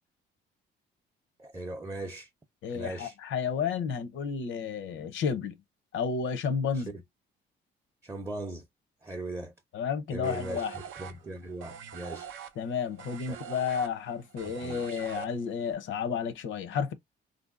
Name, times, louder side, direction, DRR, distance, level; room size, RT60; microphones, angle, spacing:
voice 1, 1.4-2.3 2.7-3.2 6.7-7.0 8.0-8.7 9.0-9.5 10.1-12.3 13.3-13.4 14.4-14.8, right 2 dB, 15° right, 0.5 m, -39 dB
voice 2, 2.6-5.6 5.9-6.9 9.7-10.7 12.6-16.9, left 6 dB, 75° left, 0.6 m, -31 dB
sound 1, 10.2-15.7, right 8 dB, 85° right, 0.6 m, -44 dB
3.4 x 2.6 x 2.3 m
cardioid pair, 90°, 20 cm